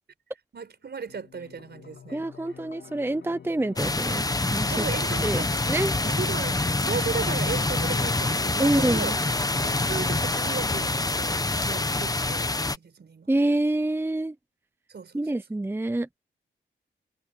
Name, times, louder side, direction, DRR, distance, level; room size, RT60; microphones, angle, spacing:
voice 1, 0.5-2.3 4.7-5.6 6.0-9.2 9.6-13.3 14.9-15.3, right 6 dB, 55° right, 5.2 m, -36 dB
sound 1, 1.1-12.1, left 7 dB, 65° left, 2.6 m, -47 dB
voice 2, 2.1-4.2 4.5-4.8 5.2-5.4 5.7-5.9 8.6-9.2 13.3-14.3 15.1-16.2, right 2 dB, 10° right, 0.7 m, -26 dB
sound 2, 3.8-12.8, left 2 dB, 20° left, 1.1 m, -26 dB
sound 3, 3.9-10.1, right 8 dB, 85° right, 3.6 m, -49 dB
cardioid pair, 80°, 20 cm